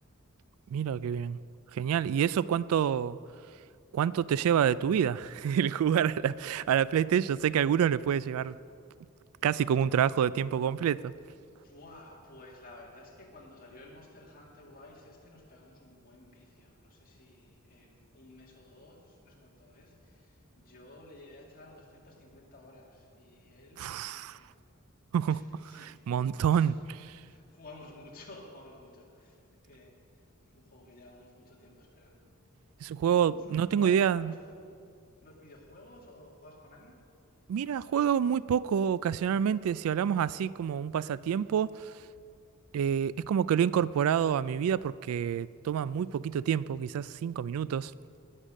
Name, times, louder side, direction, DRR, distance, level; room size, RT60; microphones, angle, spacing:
voice 1, 0.7-1.4 1.7-3.2 3.9-8.6 9.4-11.1 23.8-24.4 25.1-25.4 25.8-27.2 32.8-34.3 37.5-41.9 42.7-47.9, right 8 dB, 70° right, 18 dB, 0.3 m, -27 dB
voice 2, 11.6-24.5 25.3-25.9 26.5-26.7 27.2-30.2 30.5-32.3 32.8-34.9 35.2-37.0, left 2 dB, 40° left, -2 dB, 2.5 m, -53 dB
18.5 x 6.6 x 6.4 m, 2.3 s
head